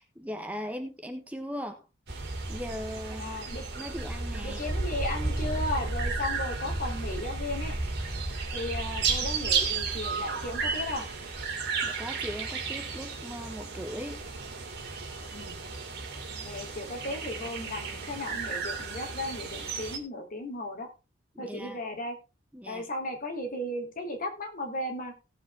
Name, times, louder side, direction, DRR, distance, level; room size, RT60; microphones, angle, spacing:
voice 1, 0.0-1.8 2.5-3.3 3.7-4.7 11.8-14.3 21.3-21.8 22.5-22.9, equal, 10° right, 6 dB, 1.2 m, -39 dB
sound 1, 2.1-20.0, right 4 dB, 55° right, 2.9 m, -33 dB
voice 2, 3.2-3.6 4.4-7.7 8.5-11.0 15.3-15.6 16.4-20.9 21.4-22.1 22.7-25.1, left 1 dB, 45° left, 3 dB, 3.2 m, -35 dB
17.5 x 7.3 x 3.5 m, 0.29 s
head